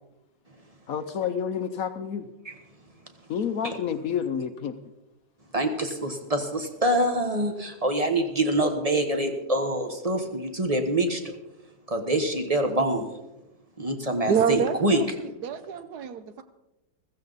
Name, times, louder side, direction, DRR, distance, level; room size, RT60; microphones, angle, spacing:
voice 1, 0.9-2.3 3.3-4.8, left 7 dB, 65° left, 9 dB, 1.0 m, -29 dB
voice 2, 5.5-11.3 11.9-13.1 13.8-15.0, right 1 dB, 25° right, 5 dB, 1.0 m, -25 dB
voice 3, 14.3-16.4, right 7 dB, 70° right, 11 dB, 1.2 m, -27 dB
15.5 x 15.0 x 4.0 m, 0.97 s
omnidirectional pair, 1.9 m